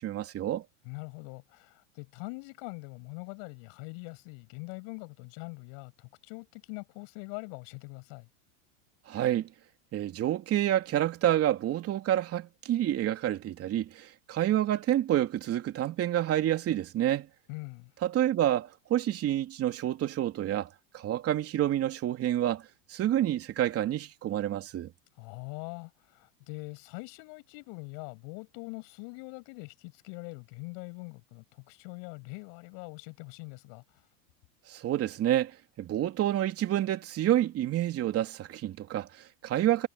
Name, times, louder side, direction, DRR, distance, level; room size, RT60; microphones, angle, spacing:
voice 1, 0.0-0.6 9.1-9.5 9.9-17.3 18.0-22.6 22.9-24.9 34.7-39.9, right 12 dB, 35° right, 3.1 m, -28 dB
voice 2, 0.8-8.3 17.5-17.9 25.2-34.1, left 36 dB, 55° left, 7.5 m, -43 dB
supercardioid pair, 125°, 40 cm